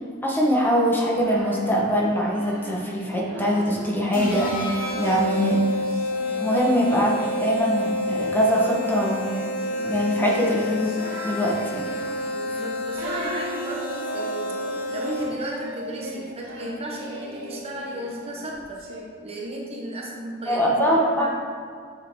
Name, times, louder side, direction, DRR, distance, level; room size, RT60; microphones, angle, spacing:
voice 1, 0.2-4.7 5.0-5.7 6.4-9.2 9.8-10.9 11.2-11.8 20.5-21.3, equal, 10° left, -3 dB, 1.0 m, -22 dB
Singing, 1.0-4.0 4.6-19.0, right 1 dB, 75° right, 1.6 m, -38 dB
sound 1, 4.1-15.5, left 2 dB, 40° left, 1.9 m, -29 dB
voice 2, 12.3-14.6 14.9-18.8 19.2-21.3, right 1 dB, 30° right, -1 dB, 0.9 m, -34 dB
7.4 x 6.5 x 3.6 m, 2.1 s
head